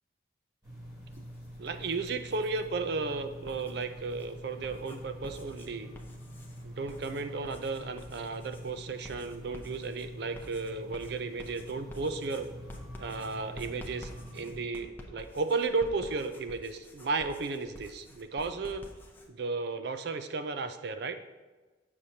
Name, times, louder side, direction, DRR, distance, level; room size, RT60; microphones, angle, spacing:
sound 1, 0.6-14.6, equal, 20° right, 1.9 m, -46 dB
Writing, 1.0-2.7 3.3-19.3, left 1 dB, 10° left, 0.6 m, -50 dB
voice 1, 1.6-5.9 6.6-12.5 13.0-18.8 19.3-21.2, right 4 dB, 55° right, 9 dB, 0.5 m, -34 dB
7.4 x 6.4 x 2.8 m, 1.2 s
head